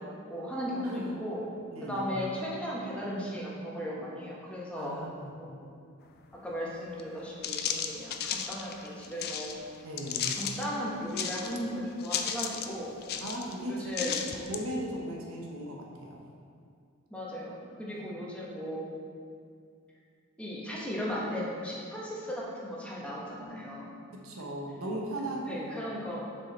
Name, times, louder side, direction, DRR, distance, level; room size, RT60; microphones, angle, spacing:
voice 1, 0.0-1.4 1.8-4.9 5.4-5.7 6.4-9.6 10.4-12.9 13.6-14.3 17.1-18.8 20.4-23.9 25.5-26.2, equal, 5° left, -6 dB, 1.2 m, -36 dB
voice 2, 0.8-1.1 1.7-2.1 4.8-5.3 9.8-10.3 13.2-14.1 14.4-16.2 17.9-18.0 24.1-26.0, right 1 dB, 80° right, -2 dB, 0.9 m, -37 dB
sound 1, 7.0-7.1 7.4-9.5 10.0-10.7 11.1-11.7 12.0-12.7 13.0-13.5 13.9-14.6, left 8 dB, 50° left, 0.4 m, -34 dB
6.3 x 4.6 x 4.3 m, 2.3 s
head